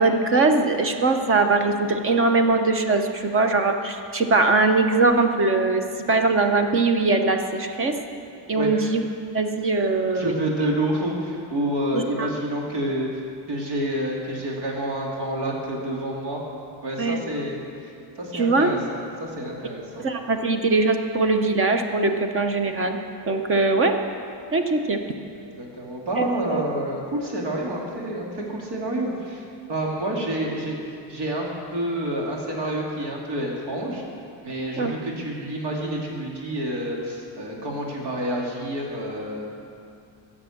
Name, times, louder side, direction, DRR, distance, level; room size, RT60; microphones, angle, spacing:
voice 1, 0.0-8.0 8.5-9.1 9.3-10.4 11.9-12.3 17.0-17.2 18.3-18.7 20.0-23.0 23.3-23.9 24.5-25.0 26.2-26.6 34.8-34.9, right 3 dB, 30° right, 6 dB, 0.8 m, -21 dB
voice 2, 10.1-13.1 13.5-16.4 16.8-17.6 18.2-20.0 25.5-29.4 29.7-30.8 31.1-34.0 34.4-39.5, right 1 dB, 70° right, -1 dB, 2.7 m, -28 dB
16.0 x 7.4 x 7.1 m, 2.5 s
cardioid pair, 180°, 44 cm